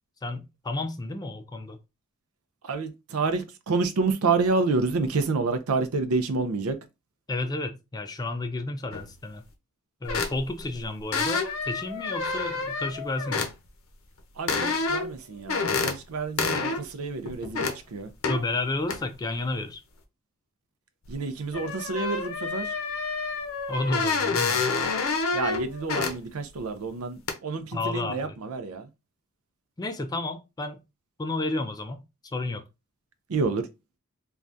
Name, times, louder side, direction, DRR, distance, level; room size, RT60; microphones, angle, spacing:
voice 1, 0.2-1.8 7.3-9.4 10.0-13.5 18.3-19.8 23.7-24.7 27.7-28.4 29.8-30.8 31.2-32.0 32.3-32.6, left 2 dB, 20° left, 0.3 m, -31 dB
voice 2, 2.6-6.8 14.4-18.1 21.1-22.7 25.3-28.9 33.3-33.6, right 4 dB, 85° right, 0.5 m, -28 dB
sound 1, 8.9-9.1 10.0-10.6 11.1-13.5 14.5-15.2 15.5-16.0 16.4-16.8 17.2-17.7 18.2-18.4 18.9-19.0 21.1-21.2 21.5-26.1 26.6-26.7 27.3-27.4, left 4 dB, 70° left, 0.6 m, -28 dB
3.3 x 2.3 x 2.5 m
head